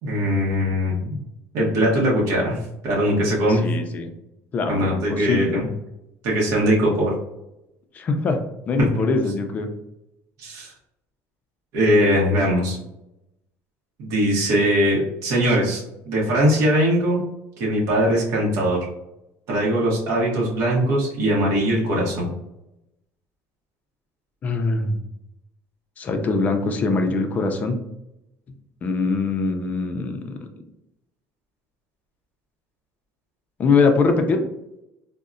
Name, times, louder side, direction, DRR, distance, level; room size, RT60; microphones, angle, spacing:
voice 1, 0.0-1.2 1.5-3.7 4.7-5.6 6.2-7.1 10.4-10.7 11.7-12.8 14.0-17.2 17.6-18.8 19.5-22.3, equal, 55° right, -4 dB, 0.8 m, -21 dB
voice 2, 3.5-4.1 4.5-5.7 7.9-8.4 8.7-9.7 24.4-25.0 26.0-27.8 28.8-30.4 33.6-34.4, left 4 dB, 25° left, 5 dB, 0.3 m, -22 dB
3.7 x 2.0 x 2.4 m, 0.86 s
cardioid pair, 170°, 6 cm